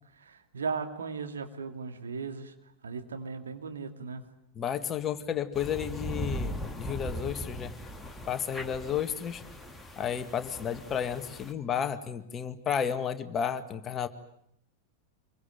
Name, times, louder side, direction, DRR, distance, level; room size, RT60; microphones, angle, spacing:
voice 1, 0.1-4.3, right 5 dB, 70° right, 6 dB, 2.6 m, -37 dB
voice 2, 4.6-7.7 8.3-9.4 10.0-14.1, left 8 dB, 25° left, 9 dB, 1.9 m, -32 dB
sound 1, 5.5-11.5, equal, 5° left, 2.3 m, -39 dB
26.5 x 23.0 x 9.2 m, 0.74 s
figure-of-eight pair, 90°, 0 cm